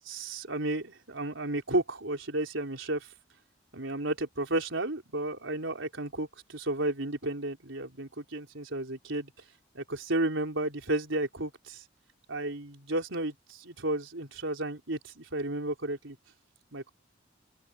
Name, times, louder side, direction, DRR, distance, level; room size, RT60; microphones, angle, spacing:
voice 1, 0.0-3.1 3.7-9.3 9.7-11.8 12.3-16.2 16.7-16.9, right 2 dB, 85° right, 4.1 m, -33 dB
open air
head